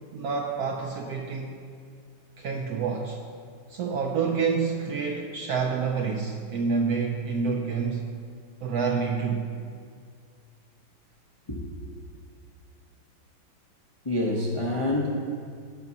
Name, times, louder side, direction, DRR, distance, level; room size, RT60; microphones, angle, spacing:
voice 1, 0.0-1.5 2.4-3.2 3.7-8.1 8.6-9.5, right 5 dB, 70° right, 1 dB, 0.9 m, -28 dB
voice 2, 14.0-15.1, left 1 dB, 35° left, -4 dB, 0.5 m, -27 dB
16.0 x 5.9 x 2.8 m, 2.2 s
omnidirectional pair, 2.1 m